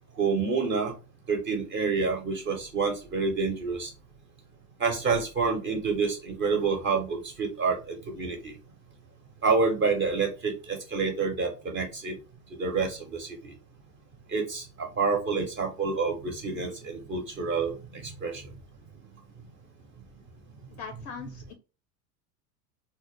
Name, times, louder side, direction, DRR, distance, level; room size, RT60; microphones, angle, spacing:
voice 1, 0.2-0.9 1.3-3.9 4.8-8.5 9.4-12.2 12.6-13.3 14.3-17.8 18.0-18.4, right 4 dB, 25° right, 3 dB, 0.5 m, -28 dB
voice 2, 20.8-21.5, left 6 dB, 35° left, 6 dB, 0.4 m, -40 dB
2.2 x 2.0 x 2.9 m, 0.32 s
hypercardioid pair, 80°, 47 cm